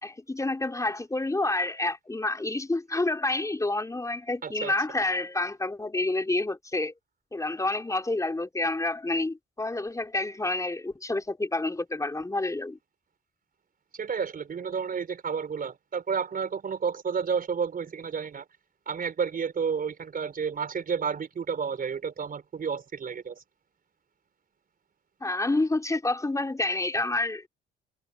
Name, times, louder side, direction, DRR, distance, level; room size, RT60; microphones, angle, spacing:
voice 1, 0.0-6.9 7.3-12.8 25.2-27.5, left 2 dB, 15° left, 4.0 m, -28 dB
voice 2, 4.4-4.7 13.9-18.4 18.9-23.4, right 6 dB, 45° right, 5.0 m, -31 dB
cardioid pair, 90°, 20 cm